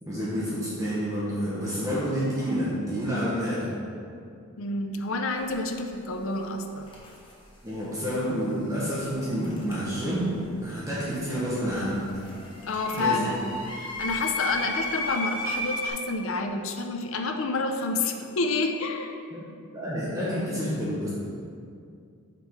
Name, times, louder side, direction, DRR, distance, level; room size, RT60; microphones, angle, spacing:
voice 1, 0.0-3.7 7.6-12.1 13.0-13.3 19.3-19.5 19.7-21.1, equal, 15° right, -8 dB, 0.9 m, -29 dB
voice 2, 4.6-6.9 12.6-13.4 13.8-19.1, left 3 dB, 65° left, 5 dB, 0.5 m, -29 dB
sound 1, 5.4-5.5 6.8-7.3 9.4-10.4 10.7-15.9, left 1 dB, 20° left, 0.9 m, -34 dB
5.2 x 4.3 x 4.5 m, 2.4 s
head